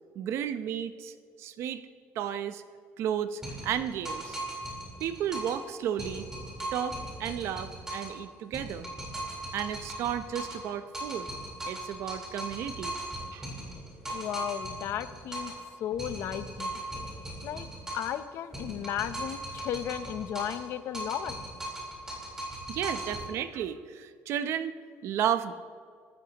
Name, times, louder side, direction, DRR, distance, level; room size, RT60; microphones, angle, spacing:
voice 1, 0.2-1.8 2.1-2.6 3.0-4.4 5.0-6.3 6.7-8.9 9.5-11.3 11.6-13.0 13.3-13.5 22.7-24.7 25.0-25.5, right 9 dB, 60° right, 11 dB, 0.7 m, -33 dB
sound 1, 3.4-5.6 6.0-8.2 8.5-10.7 10.9-15.6 16.0-18.2 18.5-20.7 20.9-23.3, right 1 dB, 10° right, 4.0 m, -38 dB
voice 2, 14.1-15.5 15.8-16.8 17.4-17.7 17.9-21.3, left 10 dB, 60° left, 12 dB, 0.7 m, -34 dB
24.5 x 13.5 x 3.0 m, 2.1 s
cardioid pair, 155°, 5 cm